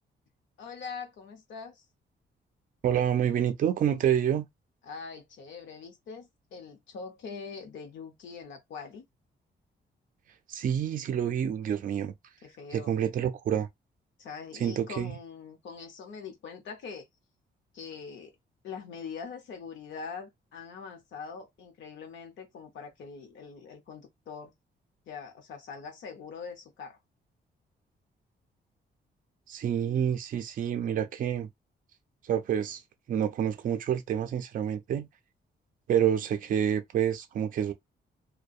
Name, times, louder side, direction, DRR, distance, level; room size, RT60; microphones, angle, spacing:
voice 1, 0.6-1.8 4.8-9.1 12.4-13.0 14.2-17.1 17.7-18.3 18.6-24.5 25.1-27.0, left 5 dB, 90° left, 0.7 m, -43 dB
voice 2, 2.8-4.5 10.5-12.1 12.7-13.7 14.6-15.1 29.5-31.5 32.2-32.8 33.1-35.1 35.9-37.7, right 9 dB, 45° right, 0.4 m, -28 dB
2.6 x 2.1 x 2.3 m
wide cardioid pair, 165°, 19 cm